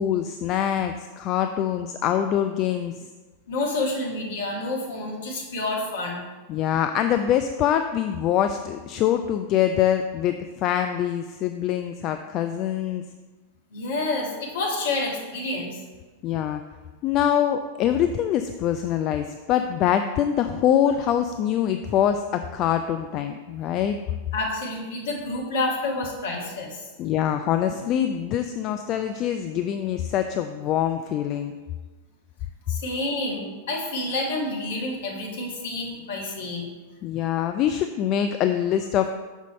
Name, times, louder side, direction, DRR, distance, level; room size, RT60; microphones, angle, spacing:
voice 1, 0.0-3.1 6.5-13.0 16.2-16.6 17.0-24.0 27.0-31.5 37.0-39.1, left 10 dB, 35° left, 7 dB, 0.3 m, -24 dB
voice 2, 3.5-6.2 13.7-15.8 24.3-26.8 32.7-36.7, left 2 dB, 60° left, -1 dB, 1.5 m, -29 dB
6.1 x 5.4 x 4.2 m, 1.3 s
figure-of-eight pair, 90°, 0 cm